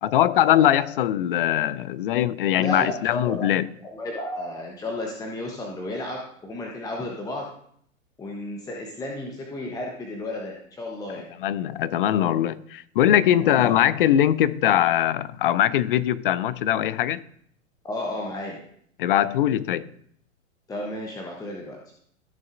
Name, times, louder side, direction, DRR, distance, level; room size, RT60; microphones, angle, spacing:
voice 1, 0.0-3.7 11.4-17.2 19.0-19.9, left 11 dB, 45° left, 0.5 m, -21 dB
voice 2, 2.6-3.5 3.8-7.4 8.2-11.3 13.4-13.7 17.8-18.6 20.7-21.8, left 1 dB, 10° left, 0.9 m, -33 dB
14.5 x 6.4 x 2.6 m
figure-of-eight pair, 110°, 40 cm